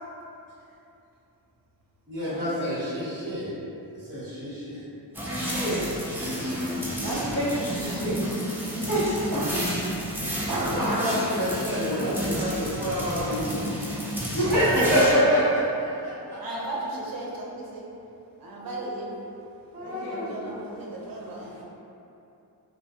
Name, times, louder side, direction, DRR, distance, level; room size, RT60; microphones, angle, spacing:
voice 1, 2.1-3.5 3.9-4.8 5.1-5.4 6.1-6.4 10.6-13.7 14.5-16.4 18.6-18.8 19.7-20.3, equal, 25° right, -12 dB, 1.0 m, -28 dB
sound 1, 5.1-15.1, equal, 5° right, 0.4 m, -31 dB
voice 2, 5.2-5.8 7.0-8.2 8.8-9.3 14.3-15.4 19.8-20.3, equal, 45° left, -11 dB, 1.2 m, -27 dB
voice 3, 7.9-8.5 9.3-9.7 10.5-11.2 16.4-17.8 18.4-19.1 19.8-21.6, right 1 dB, 55° right, -4 dB, 0.6 m, -34 dB
2.4 x 2.1 x 2.8 m, 2.8 s
cardioid pair, 75°, 41 cm